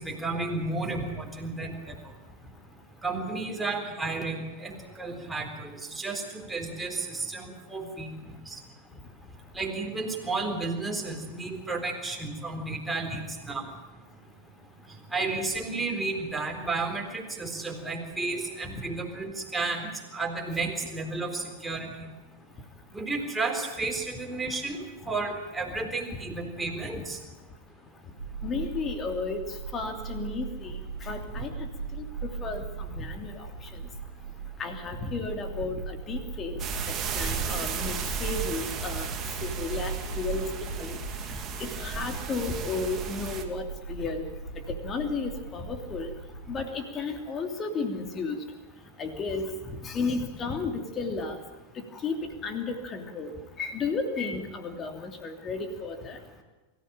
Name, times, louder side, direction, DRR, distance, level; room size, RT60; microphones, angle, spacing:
voice 1, 0.0-2.0 3.0-8.1 8.5-8.6 9.5-13.7 15.1-22.1 22.9-27.2, right 3 dB, 10° right, 1 dB, 3.8 m, -32 dB
sound 1, 28.2-46.6, right 5 dB, 75° right, 2.3 m, -39 dB
voice 2, 28.4-29.4 29.7-32.1 32.4-33.5 33.7-33.8 34.6-36.5 37.1-39.2 39.4-40.5 40.8-41.0 41.6-44.2 44.8-46.1 46.5-48.4 49.0-51.4 51.9-53.3 53.6-56.2, left 4 dB, 25° left, 5 dB, 2.9 m, -33 dB
sound 2, 36.6-43.4, right 6 dB, 25° right, 2.4 m, -34 dB
24.0 x 14.5 x 8.8 m, 1.1 s
figure-of-eight pair, 90°, 0 cm